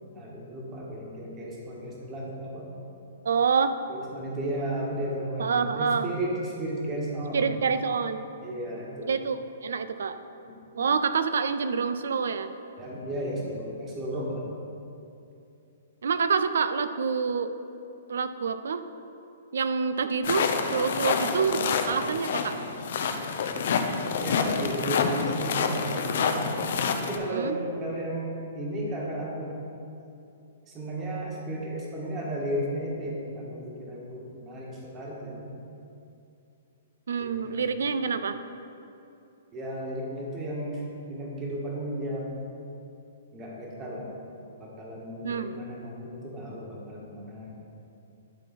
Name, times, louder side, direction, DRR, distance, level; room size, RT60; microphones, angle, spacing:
voice 1, 0.1-2.7 3.9-7.6 8.4-9.1 10.7-10.8 12.8-14.4 24.2-26.6 27.0-29.5 30.7-35.5 37.2-37.7 39.5-42.3 43.3-44.1 44.6-47.6, right 1 dB, 25° right, -3 dB, 1.7 m, -34 dB
voice 2, 3.2-3.7 5.4-6.1 7.3-8.2 9.1-10.2 10.7-12.5 16.0-17.5 18.1-18.8 19.5-22.6 27.3-27.6 37.1-38.4 45.2-45.5, right 5 dB, 75° right, 11 dB, 0.4 m, -27 dB
sound 1, 20.2-27.2, left 5 dB, 65° left, 0.6 m, -28 dB
11.0 x 3.9 x 4.2 m, 2.7 s
hypercardioid pair, 130°, 0 cm